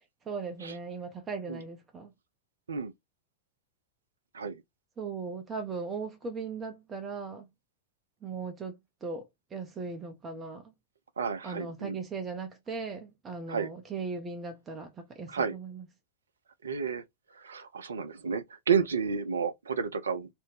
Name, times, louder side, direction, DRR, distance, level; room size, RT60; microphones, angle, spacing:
voice 1, 0.3-2.1 5.0-7.5 8.2-8.8 9.0-10.7 11.4-15.8, right 4 dB, 20° right, 0.5 m, -38 dB
voice 2, 11.2-12.0 13.5-13.7 15.3-15.6 16.6-17.0 17.4-20.3, right 6 dB, 70° right, 0.4 m, -31 dB
2.5 x 2.1 x 3.1 m
figure-of-eight pair, 90°, 0 cm